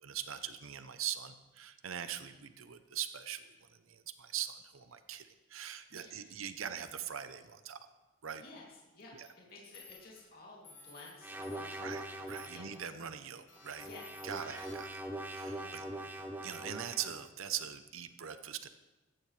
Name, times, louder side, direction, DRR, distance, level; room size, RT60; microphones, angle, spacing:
voice 1, 0.0-3.5 3.9-7.8 8.2-8.4 9.1-9.3 11.8-12.0 12.3-13.9 14.2-15.8 16.4-18.7, right 9 dB, 85° right, 10 dB, 0.7 m, -42 dB
voice 2, 5.9-6.4 8.4-12.1 12.5-12.6 13.8-14.0 14.3-14.5 15.5-16.2, left 2 dB, 45° left, -4 dB, 2.8 m, -54 dB
sound 1, 9.1-9.3 9.7-10.2 10.6-11.1 11.4-12.0 12.4-12.9 13.5-15.0, left 5 dB, 60° left, 1.8 m, -56 dB
sound 2, 11.2-12.8 13.6-17.2, right 1 dB, 10° right, 0.7 m, -43 dB
15.5 x 14.0 x 3.3 m, 1.1 s
head